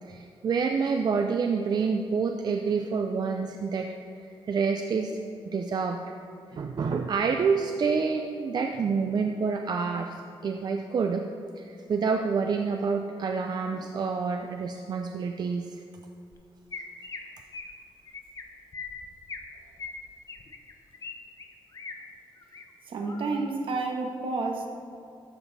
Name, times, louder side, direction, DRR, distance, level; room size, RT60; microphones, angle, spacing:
voice 1, 0.0-3.9 4.4-6.1 6.5-11.3 11.6-15.8, right 5 dB, 50° right, 4 dB, 0.5 m, -28 dB
Chirp tweet, 16.3-16.4 16.7-17.2 17.5-17.7 18.1-18.4 18.7-19.5 19.8-21.1 21.4-21.9 22.4-22.6 23.1-23.4, left 4 dB, 40° left, 0.9 m, -40 dB
voice 2, 22.9-24.7, right 3 dB, 70° right, 2 dB, 1.3 m, -30 dB
13.0 x 7.2 x 4.1 m, 2.6 s
wide cardioid pair, 130°, 9 cm